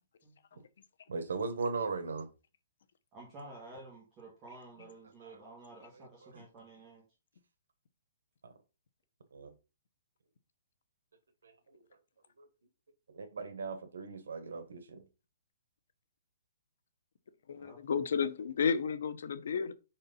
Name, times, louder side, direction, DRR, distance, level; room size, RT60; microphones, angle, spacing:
voice 1, 0.2-0.7 3.1-7.1 17.5-17.8, right 2 dB, 15° right, 1.6 m, -52 dB
voice 2, 1.1-2.3 5.2-5.4 5.9-6.4 8.4-8.5 9.3-9.5 11.4-11.8 12.4-12.5 13.1-15.0, right 4 dB, 85° right, 1.3 m, -38 dB
voice 3, 17.5-19.7, left 6 dB, 60° left, 0.8 m, -32 dB
5.2 x 4.3 x 5.3 m
hypercardioid pair, 170°, 0 cm